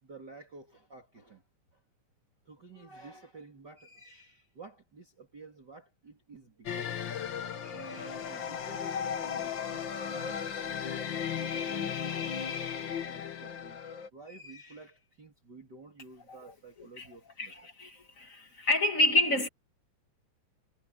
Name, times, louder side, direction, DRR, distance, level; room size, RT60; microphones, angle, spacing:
voice 1, 0.0-1.4 1.7-1.8 2.5-7.2 7.6-17.5, right 3 dB, 30° right, 3.4 m, -51 dB
sound 1, 6.7-14.1, left 8 dB, 55° left, 1.4 m, -35 dB
voice 2, 17.4-19.5, left 1 dB, 30° left, 2.0 m, -28 dB
omnidirectional pair, 3.8 m